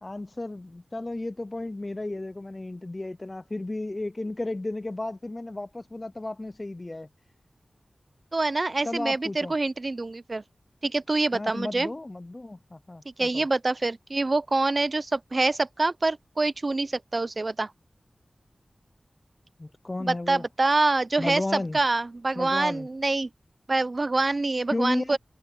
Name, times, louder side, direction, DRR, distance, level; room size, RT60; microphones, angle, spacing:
voice 1, 0.0-7.1 8.8-9.6 11.3-13.5 19.6-20.5 21.2-21.8 22.4-22.9 24.7-25.2, left 2 dB, 30° left, 0.3 m, -33 dB
voice 2, 8.3-10.4 10.8-11.9 13.2-17.7 20.0-23.3 23.7-25.2, right 2 dB, 45° right, 0.5 m, -26 dB
wide cardioid pair, 80°, 0 cm